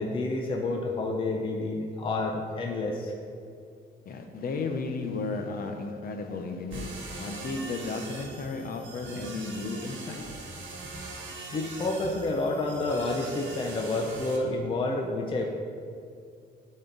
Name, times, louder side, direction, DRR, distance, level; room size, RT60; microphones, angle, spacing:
voice 1, 0.0-3.1 11.5-15.5, left 2 dB, 25° left, 1 dB, 0.5 m, -29 dB
voice 2, 4.1-6.9 7.2-10.2, left 3 dB, 50° left, 4 dB, 0.8 m, -34 dB
sound 1, 6.7-14.4, right 3 dB, 70° right, 1.5 m, -42 dB
12.5 x 4.3 x 3.9 m, 2.5 s
cardioid pair, 175°, 20 cm